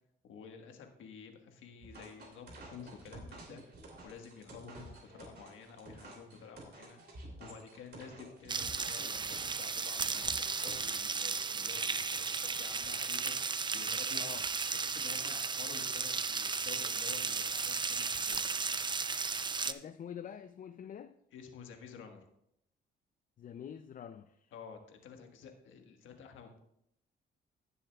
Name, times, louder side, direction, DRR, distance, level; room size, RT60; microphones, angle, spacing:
voice 1, 0.2-3.6 4.0-7.0 7.4-13.4 13.7-14.2 14.7-18.5 21.3-22.2 24.5-26.6, left 6 dB, 80° left, 1.5 m, -51 dB
sound 1, 1.8-10.8, right 2 dB, 55° right, 3.1 m, -51 dB
sound 2, 8.5-19.7, right 5 dB, 25° right, 0.5 m, -35 dB
voice 2, 19.7-21.1 23.4-24.5, left 8 dB, 45° left, 0.5 m, -46 dB
17.5 x 7.1 x 2.3 m
cardioid pair, 90°, 20 cm